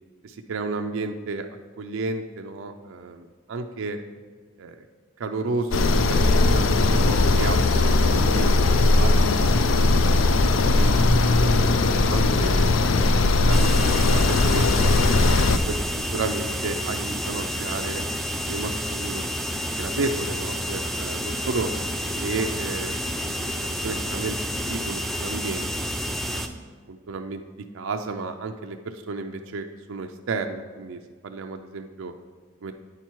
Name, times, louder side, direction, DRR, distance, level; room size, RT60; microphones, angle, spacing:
voice 1, 0.2-1.5 1.8-4.0 4.6-4.8 5.2-5.8 6.1-9.9 10.7-13.1 13.5-14.9 15.4-15.8 16.1-18.0 18.5-19.2 19.8-21.7 22.1-23.5 23.8-25.7 26.3-26.4 26.9-27.4 27.7-31.0 31.2-32.1 32.6-32.7, right 3 dB, 85° right, 5 dB, 0.5 m, -32 dB
sound 1, 5.7-15.6, left 2 dB, 85° left, 0.5 m, -19 dB
sound 2, 13.5-26.5, equal, ahead, 0.3 m, -29 dB
8.7 x 5.8 x 4.6 m, 1.5 s
head